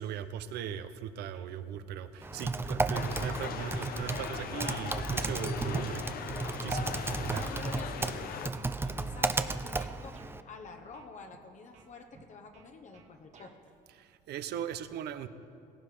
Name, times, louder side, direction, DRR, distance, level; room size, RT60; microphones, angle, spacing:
voice 1, 0.0-6.0 6.6-6.9 7.2-7.4 14.0-15.3, right 9 dB, 75° right, 12 dB, 0.8 m, -38 dB
sound 1, 1.3-1.8 2.1-3.1 3.7-3.9 4.5-7.2 7.7-8.2 8.5-9.5 10.1-10.3 10.9-11.4 11.7-13.6, right 6 dB, 40° right, 1.6 m, -58 dB
Typing, 2.2-10.4, right 3 dB, 15° right, 0.5 m, -34 dB
sound 2, 2.9-8.5, left 8 dB, 65° left, 0.9 m, -40 dB
voice 2, 6.4-6.8 7.3-13.7, left 4 dB, 45° left, 4 dB, 1.2 m, -48 dB
17.0 x 16.5 x 5.0 m, 2.6 s
cardioid pair, 110°, 17 cm